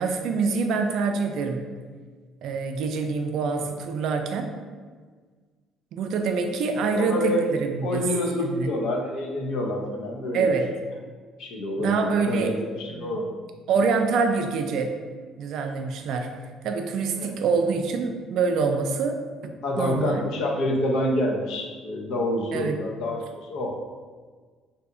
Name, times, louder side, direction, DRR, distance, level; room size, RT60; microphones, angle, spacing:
voice 1, 0.0-1.6 2.4-4.5 5.9-8.1 8.4-8.7 10.3-10.7 11.8-12.5 12.9-13.1 13.7-14.9 15.4-16.3 16.6-19.2 19.8-20.2 22.5-22.8, right 4 dB, 65° right, 5 dB, 0.3 m, -25 dB
voice 2, 6.9-7.4 7.8-10.5 11.4-13.3 17.2-17.4 19.6-23.8, left 1 dB, 70° left, 1 dB, 0.5 m, -27 dB
2.7 x 2.5 x 3.6 m, 1.5 s
cardioid pair, 145°, 0 cm